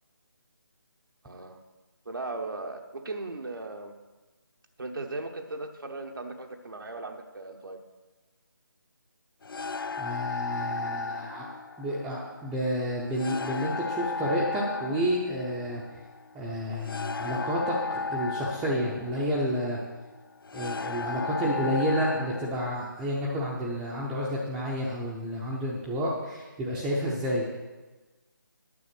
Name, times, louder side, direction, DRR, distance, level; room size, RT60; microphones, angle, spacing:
voice 1, 1.2-1.6 2.1-4.0 4.8-7.8, right 2 dB, 75° right, 3 dB, 1.0 m, -37 dB
sound 1, 9.4-22.5, left 4 dB, 75° left, 0.4 m, -35 dB
voice 2, 10.0-11.5 11.8-15.8 16.3-19.8 20.5-27.6, equal, 5° right, -8 dB, 0.7 m, -30 dB
9.8 x 7.1 x 5.9 m, 1.2 s
figure-of-eight pair, 160°, 12 cm